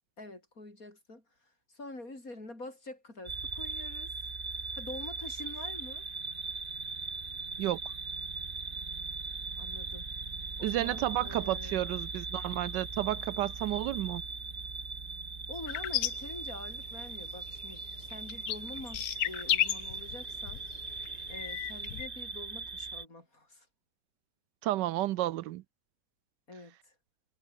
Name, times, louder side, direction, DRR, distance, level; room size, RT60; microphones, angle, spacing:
voice 1, 0.2-4.2 4.5-6.1 9.6-10.1 10.6-11.8 15.5-20.6 21.3-23.7 26.5-26.9, left 2 dB, 50° left, 6.7 m, -46 dB
sound 1, 3.3-23.1, right 4 dB, 30° right, 1.8 m, -39 dB
voice 2, 10.6-14.2 24.6-25.6, right 15 dB, 85° right, 1.3 m, -31 dB
sound 2, 15.7-17.2 17.4-22.1, left 13 dB, 80° left, 1.4 m, -34 dB
omnidirectional pair, 1.9 m